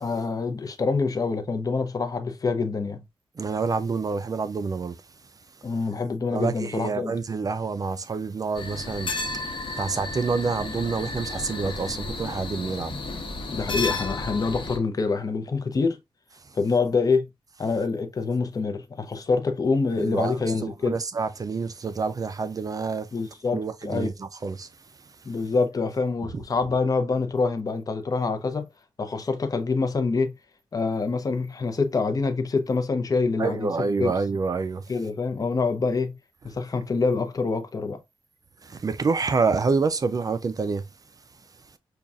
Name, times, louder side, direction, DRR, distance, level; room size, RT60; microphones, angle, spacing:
voice 1, 0.0-3.0 5.6-7.2 13.5-16.0 16.5-17.3 17.6-21.0 23.1-24.1 25.2-28.7 29.0-30.4 30.7-33.7 34.0-34.1 34.9-36.2 36.4-38.0, left 4 dB, 40° left, 0.6 m, -26 dB
voice 2, 3.4-5.0 6.3-9.1 9.7-13.0 20.0-20.4 20.6-23.1 23.5-24.7 33.4-34.8 38.6-40.9, right 4 dB, 40° right, 0.4 m, -27 dB
sound 1, 8.6-14.8, left 3 dB, 60° left, 1.0 m, -32 dB
5.2 x 2.3 x 2.4 m
wide cardioid pair, 95°, 9 cm